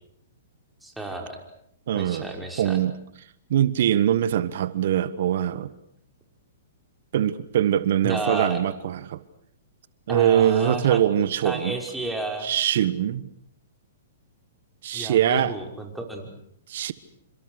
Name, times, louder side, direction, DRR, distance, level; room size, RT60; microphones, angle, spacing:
voice 1, 0.8-1.4 1.9-2.8 8.0-8.6 10.1-11.0 11.4-12.5 14.9-16.3, right 2 dB, 5° right, 5.6 m, -32 dB
voice 2, 1.9-2.3 2.6-2.9 3.5-5.7 7.1-9.2 10.1-11.8 12.4-13.3 14.8-15.5 16.7-16.9, right 10 dB, 60° right, 1.4 m, -22 dB
28.5 x 26.5 x 6.6 m
hypercardioid pair, 125°, 0 cm